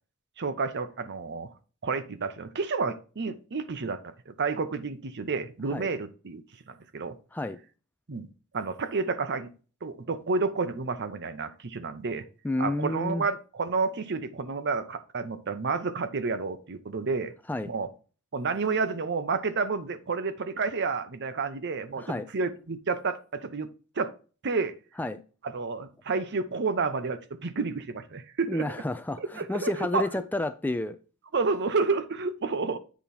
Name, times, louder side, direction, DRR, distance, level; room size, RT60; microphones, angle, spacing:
voice 1, 0.4-1.5 1.8-7.2 8.1-9.5 9.8-12.2 12.6-17.3 17.6-17.9 18.3-23.7 24.0-24.1 24.4-24.7 25.4-28.7 29.4-30.2 31.3-32.8, right 4 dB, 55° right, 0.7 m, -30 dB
voice 2, 12.4-13.2 17.5-17.7 22.0-22.3 25.0-25.2 28.5-31.0, left 2 dB, 10° left, 0.3 m, -30 dB
8.4 x 3.0 x 5.3 m
head